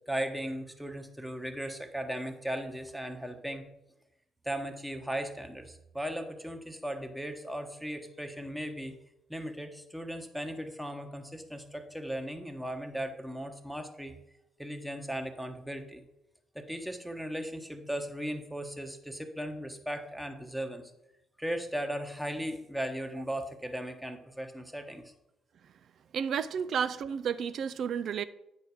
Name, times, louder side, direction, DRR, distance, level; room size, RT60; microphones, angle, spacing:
voice 1, 0.1-3.7 4.4-8.9 9.3-14.1 14.6-16.0 16.5-20.9 21.4-25.1, equal, 5° right, 5 dB, 1.2 m, -37 dB
voice 2, 26.1-28.2, right 7 dB, 60° right, 14 dB, 0.4 m, -31 dB
9.2 x 4.6 x 4.9 m, 0.88 s
hypercardioid pair, 45°, 0 cm